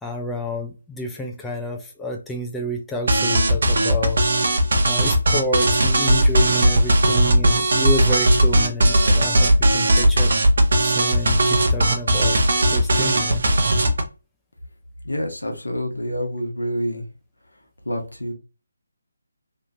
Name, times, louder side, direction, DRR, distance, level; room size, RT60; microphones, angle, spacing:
voice 1, 0.0-4.2 4.9-10.3 10.8-13.4, equal, 5° left, 0.4 m, -29 dB
sound 1, 3.1-14.0, right 1 dB, 55° right, 0.6 m, -17 dB
voice 2, 15.0-17.0 17.8-18.3, equal, 80° left, 0.9 m, -27 dB
2.9 x 2.4 x 2.6 m
figure-of-eight pair, 150°, 0 cm